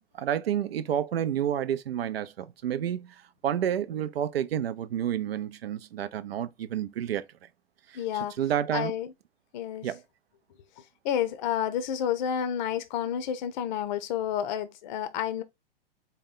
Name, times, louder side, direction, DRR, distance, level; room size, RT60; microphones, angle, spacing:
voice 1, 0.2-3.1 3.4-7.2 7.9-8.0 8.4-8.9 9.8-10.0, right 10 dB, 75° right, 0.6 m, -29 dB
voice 2, 7.9-8.4 8.7-9.1 9.5-9.9 11.0-15.4, left 9 dB, 50° left, 0.6 m, -30 dB
4.2 x 2.2 x 3.8 m
hypercardioid pair, 110°, 31 cm